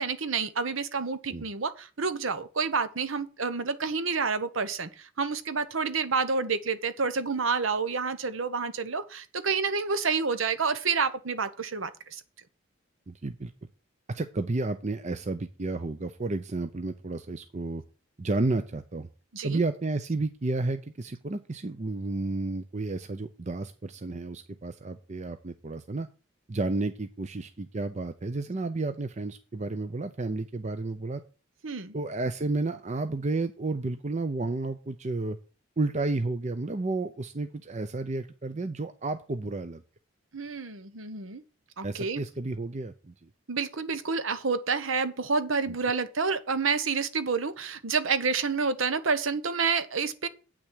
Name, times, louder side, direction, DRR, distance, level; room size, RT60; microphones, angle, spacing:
voice 1, 0.0-12.2 19.3-19.6 31.6-31.9 40.3-41.4 41.8-42.2 43.5-50.3, right 5 dB, 75° right, 1.0 m, -29 dB
voice 2, 13.1-13.5 14.1-17.8 18.2-19.1 19.4-26.1 26.5-31.2 31.9-35.4 35.8-39.8 41.8-43.3 45.7-45.8, right 2 dB, 35° right, 0.6 m, -31 dB
8.7 x 6.2 x 6.2 m
head